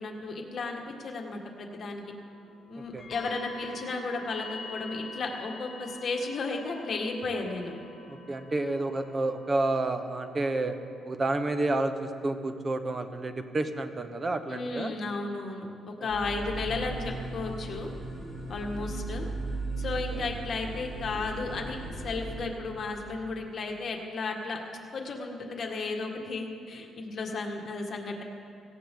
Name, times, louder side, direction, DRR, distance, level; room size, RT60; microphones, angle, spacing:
voice 1, 0.0-2.0 2.7-7.7 14.5-17.9 18.5-19.3 19.8-21.8 22.0-24.6 24.9-28.2, left 3 dB, 50° left, 1 dB, 1.9 m, -34 dB
sound 1, 2.0-10.9, left 3 dB, 25° left, 4.1 m, -46 dB
voice 2, 8.1-10.7 11.1-14.9 16.0-16.1 18.8-18.9 20.1-20.3, right 2 dB, 30° right, 9 dB, 1.1 m, -30 dB
sound 2, 16.1-22.4, right 2 dB, 15° right, 4.6 m, -37 dB
17.5 x 16.0 x 3.9 m, 2.6 s
cardioid pair, 90°, 0 cm